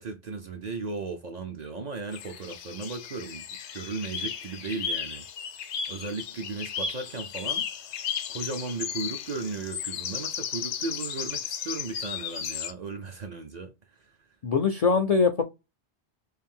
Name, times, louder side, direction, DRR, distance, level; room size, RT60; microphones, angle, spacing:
voice 1, 0.0-3.5 3.7-5.3 5.9-7.7 8.3-13.7 14.0-14.1, right 3 dB, 50° right, 0.5 m, -36 dB
sound 1, 2.1-12.7, left 7 dB, 85° left, 0.9 m, -35 dB
voice 2, 14.4-15.4, left 5 dB, 55° left, 0.4 m, -22 dB
3.2 x 2.6 x 3.5 m
omnidirectional pair, 1.1 m